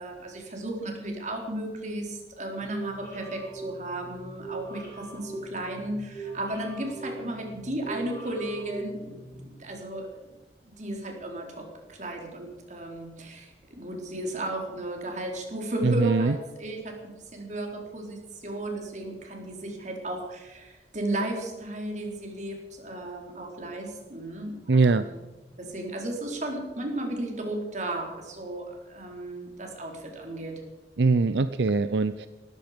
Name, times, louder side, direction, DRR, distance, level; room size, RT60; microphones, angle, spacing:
voice 1, 0.0-10.1 10.6-25.2 25.6-30.5, right 1 dB, 40° right, 1 dB, 4.1 m, -34 dB
sound 1, 2.6-9.5, right 2 dB, 15° left, 6.2 m, -41 dB
voice 2, 15.8-16.3 24.7-25.0 31.0-32.3, right 3 dB, 75° right, 12 dB, 0.6 m, -22 dB
18.5 x 14.5 x 5.2 m, 1.1 s
head